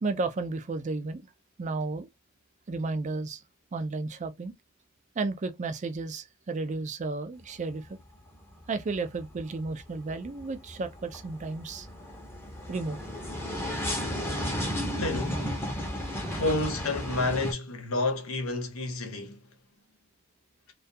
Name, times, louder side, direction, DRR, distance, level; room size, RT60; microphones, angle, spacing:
voice 1, 0.0-1.3 1.6-2.1 2.7-3.4 3.7-4.5 5.2-8.0 8.7-11.9 12.7-13.0, right 3 dB, 35° right, 0.4 m, -33 dB
sound 1, 7.4-8.0 8.3-17.5, equal, 10° left, 0.7 m, -34 dB
voice 2, 15.0-15.5 16.3-19.4, left 2 dB, 90° left, 0.8 m, -30 dB
2.3 x 2.2 x 2.6 m
head